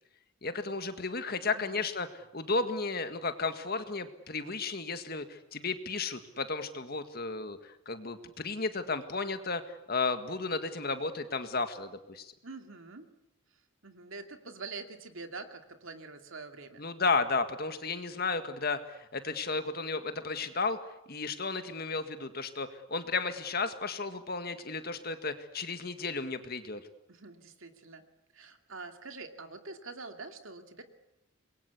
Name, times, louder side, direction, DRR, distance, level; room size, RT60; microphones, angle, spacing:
voice 1, 0.4-12.3 16.8-20.8 21.1-26.8, left 4 dB, 45° left, 9 dB, 1.8 m, -33 dB
voice 2, 12.4-13.0 13.8-16.8 27.1-28.0 28.3-30.8, right 3 dB, 65° right, 6 dB, 2.5 m, -45 dB
26.5 x 22.0 x 8.4 m, 0.86 s
head